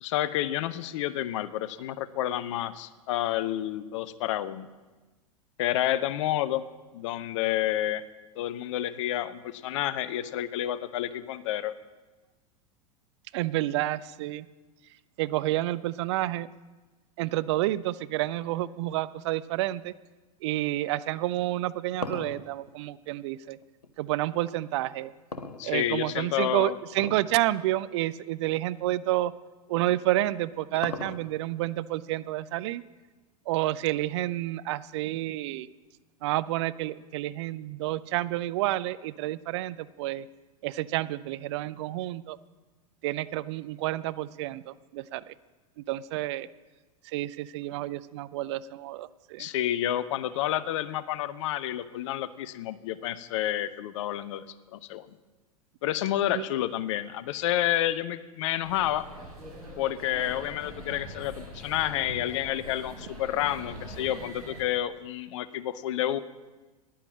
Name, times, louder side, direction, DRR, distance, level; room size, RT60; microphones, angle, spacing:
voice 1, 0.0-4.7 5.6-6.6 6.9-8.0 8.4-11.8 25.6-26.8 49.4-54.4 54.7-55.1 55.8-59.1 59.8-66.2, left 12 dB, 50° left, 16 dB, 0.6 m, -29 dB
voice 2, 13.3-14.5 15.2-16.5 17.2-19.9 20.4-23.6 24.0-25.1 25.6-29.3 29.7-32.8 33.5-35.7 36.2-40.3 40.6-42.4 43.0-45.3 45.8-46.5 47.0-49.5 56.3-56.4, right 16 dB, 45° right, 17 dB, 0.4 m, -29 dB
sound 1, 21.5-23.9 25.3-26.2 26.9-27.3 27.7-27.8 28.5-28.7 30.0-31.5, left 3 dB, 80° left, 0.9 m, -38 dB
sound 2, 58.6-64.6, equal, 75° right, 4.1 m, -43 dB
10.0 x 10.0 x 7.4 m, 1.2 s
figure-of-eight pair, 85°, 19 cm